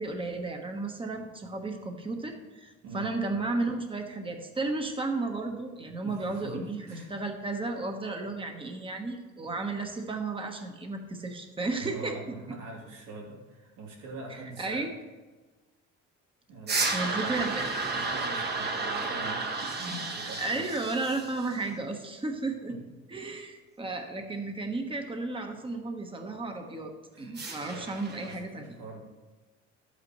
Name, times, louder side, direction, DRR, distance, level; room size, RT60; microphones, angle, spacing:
voice 1, 0.0-12.1 14.6-14.9 16.9-17.6 20.4-22.8 23.1-26.9 27.2-28.8, right 3 dB, 20° right, 4 dB, 1.2 m, -33 dB
voice 2, 6.0-7.1 11.8-14.8 16.5-17.5 17.9-20.7 22.7-22.9 27.1-27.9 28.2-29.0, right 2 dB, 85° right, -2 dB, 2.9 m, -43 dB
sound 1, 16.7-21.7 27.4-28.3, right 3 dB, 35° right, 1.3 m, -32 dB
12.0 x 8.3 x 3.1 m, 1.3 s
cardioid pair, 120°, 29 cm